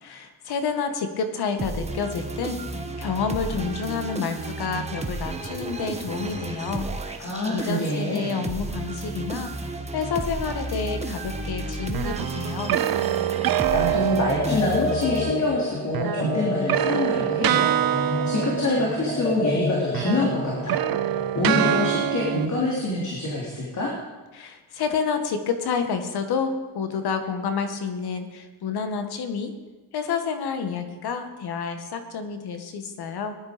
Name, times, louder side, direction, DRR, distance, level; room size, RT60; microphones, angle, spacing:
voice 1, 0.0-12.8 24.3-29.5 29.9-33.4, left 5 dB, 70° left, 7 dB, 1.9 m, -29 dB
Melodic Dubstep loop, 1.6-15.8, right 3 dB, 15° right, 1.4 m, -33 dB
voice 2, 7.2-8.3 13.7-23.9, left 2 dB, 45° left, -3 dB, 3.3 m, -26 dB
sound 1, 11.9-15.0 15.9-19.6 19.9-22.5, right 12 dB, 60° right, 0.7 m, -26 dB
sound 2, 14.4-22.7, left 2 dB, 20° left, 1.1 m, -30 dB
19.0 x 11.5 x 5.2 m, 1.3 s
cardioid pair, 140°, 40 cm